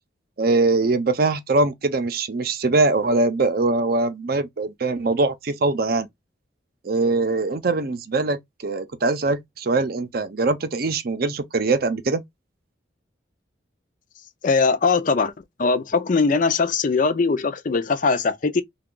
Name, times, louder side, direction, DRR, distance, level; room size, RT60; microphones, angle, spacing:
voice 1, 0.4-6.1 6.8-12.2, right 3 dB, 50° right, 0.6 m, -22 dB
voice 2, 14.4-15.3 15.6-18.6, left 4 dB, 45° left, 0.4 m, -20 dB
3.3 x 2.4 x 3.7 m
head